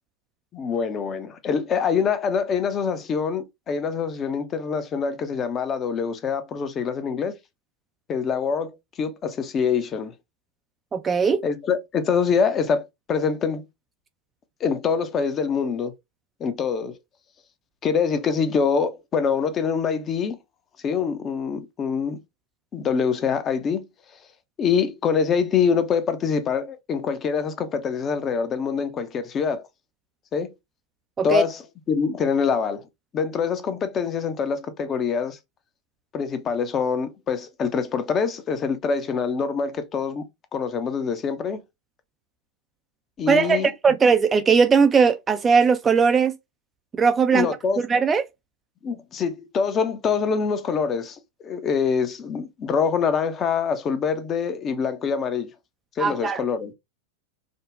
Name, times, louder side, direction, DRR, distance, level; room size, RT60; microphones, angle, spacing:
voice 1, 0.5-7.4 8.1-10.1 11.4-12.8 13.1-13.6 14.6-15.9 16.4-17.0 17.8-20.4 20.8-22.2 22.7-23.8 24.6-29.7 30.3-30.5 31.2-31.6 31.9-32.9 33.1-35.4 36.1-40.2 40.5-41.6 43.2-43.7 47.3-47.8 48.8-55.5 56.0-56.7, left 6 dB, 25° left, 0.6 m, -25 dB
voice 2, 10.9-11.4 31.2-31.4 43.3-46.4 46.9-47.5 47.9-48.2 56.0-56.4, right 5 dB, 20° right, 0.3 m, -19 dB
5.1 x 2.1 x 2.4 m
figure-of-eight pair, 90°, 0 cm